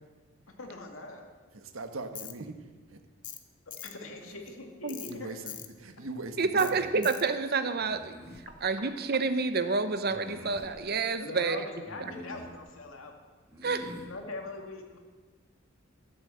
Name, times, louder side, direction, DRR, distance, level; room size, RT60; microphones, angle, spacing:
voice 1, 0.5-1.3 3.8-5.3 11.2-13.1 14.1-15.0, left 2 dB, 85° left, 2 dB, 2.2 m, -42 dB
voice 2, 1.5-2.5 2.9-3.0 5.0-6.9, right 2 dB, 85° right, 7 dB, 1.4 m, -40 dB
Tools, 2.2-2.3 3.2-3.4 3.7-3.9 4.9-5.1 5.5-5.7 6.6-6.7 7.0-7.2, left 11 dB, 40° left, 0.9 m, -41 dB
voice 3, 6.4-8.1 8.6-11.7 13.6-13.9, right 4 dB, 50° right, 10 dB, 0.9 m, -28 dB
sound 1, 7.8-8.5 10.1-10.7 11.9-12.6 13.5-14.1, left 1 dB, 15° right, 2.5 m, -46 dB
13.0 x 10.5 x 7.7 m, 1.4 s
head